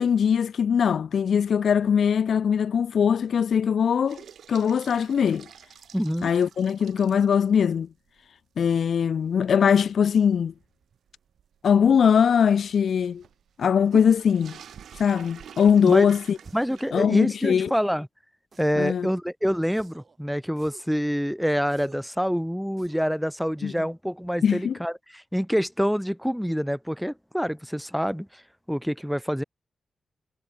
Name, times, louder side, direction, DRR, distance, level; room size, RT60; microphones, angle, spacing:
voice 1, 0.0-4.2 4.5-5.5 6.2-7.9 8.6-10.5 11.6-13.2 13.6-14.6 15.0-16.4 16.9-17.7 18.8-19.1 23.6-23.7 24.4-24.7, left 7 dB, 60° left, 0.4 m, -21 dB
sound 1, 4.1-7.6 8.1-8.2 8.6-8.7 9.3-16.9, right 8 dB, 80° right, 5.5 m, -47 dB
voice 2, 5.9-6.3 15.8-16.1 16.5-18.1 18.6-28.3 28.7-29.4, equal, ahead, 2.7 m, -26 dB
sound 2, 16.4-16.8 17.6-18.0 18.5-19.0 19.7-20.2 20.6-21.0 21.7-22.2 22.8-23.2, right 4 dB, 35° right, 7.3 m, -52 dB
wide cardioid pair, 165°, 0 cm